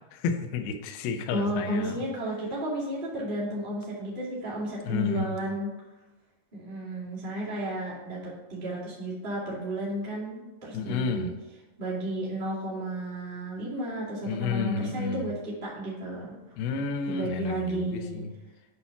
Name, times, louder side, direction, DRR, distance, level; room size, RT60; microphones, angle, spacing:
voice 1, 0.1-2.0 4.8-5.4 10.7-11.3 14.3-15.3 16.6-18.3, left 5 dB, 85° left, 5 dB, 2.1 m, -31 dB
voice 2, 1.3-5.7 6.5-11.3 11.8-16.3 17.0-18.2, right 1 dB, 25° right, -8 dB, 1.1 m, -33 dB
8.8 x 4.2 x 5.8 m, 1.1 s
omnidirectional pair, 5.4 m